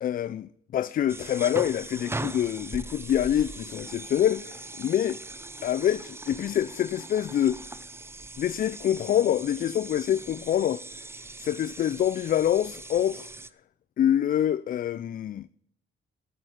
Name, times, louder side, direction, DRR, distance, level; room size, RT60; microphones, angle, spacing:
voice 1, 0.0-5.2 5.6-7.6 8.4-10.8 11.4-13.3 14.0-15.5, left 10 dB, 45° left, 0.4 m, -26 dB
sound 1, 1.1-13.5, right 2 dB, 10° right, 0.6 m, -40 dB
9.5 x 7.9 x 9.1 m
cardioid pair, 90°, 20 cm